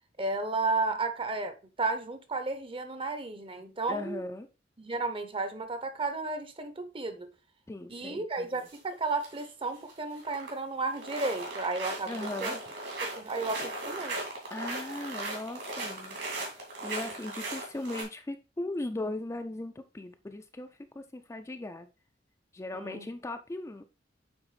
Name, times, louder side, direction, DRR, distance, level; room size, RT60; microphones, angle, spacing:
voice 1, 0.2-4.2 4.8-7.3 7.9-12.6 13.0-14.2 22.7-23.1, right 3 dB, 30° right, 0.7 m, -33 dB
voice 2, 3.9-4.5 7.7-8.5 12.1-12.6 14.5-16.2 16.8-20.7 20.9-21.9 22.5-23.8, left 2 dB, 15° left, 0.4 m, -38 dB
sound 1, 8.6-8.8 9.1-9.5 9.8-10.6 10.9-18.0, right 2 dB, 75° right, 3.0 m, -37 dB
8.8 x 3.5 x 3.2 m
head